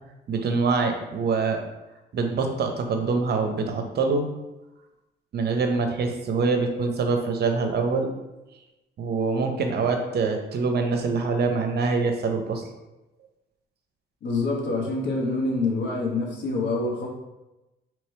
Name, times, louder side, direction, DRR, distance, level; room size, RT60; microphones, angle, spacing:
voice 1, 0.3-1.6 2.1-4.3 5.3-8.1 9.0-12.6, right 4 dB, 55° right, 5 dB, 0.7 m, -24 dB
voice 2, 14.2-17.1, left 3 dB, 65° left, -2 dB, 1.2 m, -26 dB
3.2 x 3.1 x 4.3 m, 1.0 s
cardioid pair, 90°, 20 cm